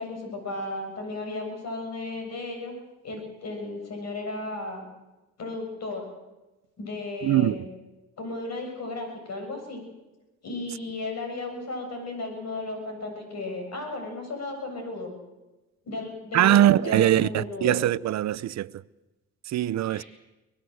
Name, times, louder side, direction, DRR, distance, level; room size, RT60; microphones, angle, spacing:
voice 1, 0.0-2.7 3.0-4.8 5.4-6.1 6.8-7.7 8.2-9.8 10.4-15.1 15.9-17.8 19.8-20.1, left 2 dB, 60° left, 7.2 m, -34 dB
voice 2, 7.2-7.7 16.3-18.7 19.5-20.0, right 13 dB, 65° right, 0.6 m, -22 dB
23.5 x 19.0 x 7.9 m
cardioid pair, 90°, 30 cm